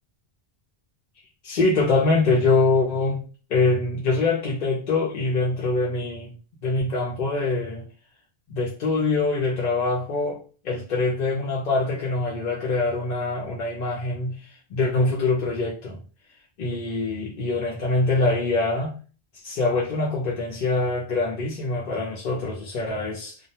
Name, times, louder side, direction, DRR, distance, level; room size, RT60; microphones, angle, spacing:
voice 1, 1.4-3.2 3.5-6.3 6.6-7.8 8.5-16.0 16.6-18.9 19.4-23.4, left 3 dB, 55° left, 0.6 m, -24 dB
2.2 x 2.1 x 2.8 m
omnidirectional pair, 1.0 m